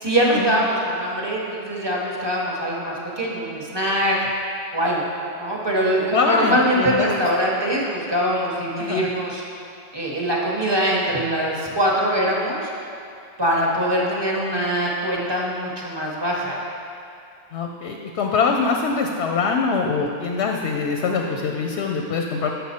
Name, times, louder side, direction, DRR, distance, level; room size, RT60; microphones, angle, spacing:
voice 1, 0.0-4.3 4.7-5.0 5.4-9.4 9.9-12.7 13.4-16.6, equal, 25° right, -3 dB, 0.8 m, -23 dB
voice 2, 6.0-7.1 8.8-9.1 17.5-22.5, left 4 dB, 65° left, 2 dB, 0.7 m, -23 dB
7.8 x 5.5 x 4.2 m, 2.5 s
omnidirectional pair, 1.4 m